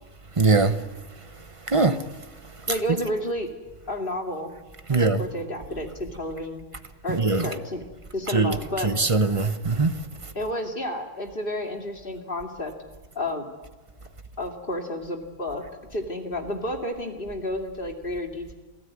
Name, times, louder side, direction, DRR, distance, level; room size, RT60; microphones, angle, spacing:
voice 1, 0.4-0.7 1.7-2.0 4.9-5.2 7.1-7.4 8.3-8.6 8.8-9.9, right 3 dB, 25° right, 1.0 m, -21 dB
voice 2, 2.7-3.5 3.9-4.5 4.9-6.6 7.0-7.8 8.1-8.9 10.3-12.7 13.2-13.5 14.4-15.6 15.9-18.5, left 1 dB, 45° left, 2.7 m, -31 dB
27.5 x 16.5 x 9.6 m
omnidirectional pair, 1.3 m